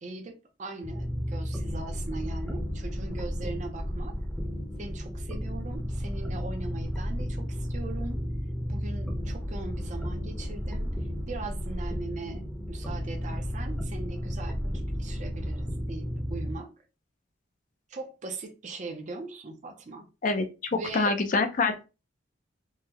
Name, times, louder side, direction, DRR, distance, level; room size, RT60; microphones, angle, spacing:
voice 1, 0.0-4.2 4.8-8.2 8.7-11.0 11.3-16.7 17.9-20.1 20.7-21.2, right 3 dB, 40° right, 0.5 m, -40 dB
sound 1, 0.8-16.5, equal, 5° left, 0.6 m, -33 dB
voice 2, 20.2-21.9, left 3 dB, 45° left, 0.4 m, -26 dB
3.7 x 2.1 x 2.8 m
head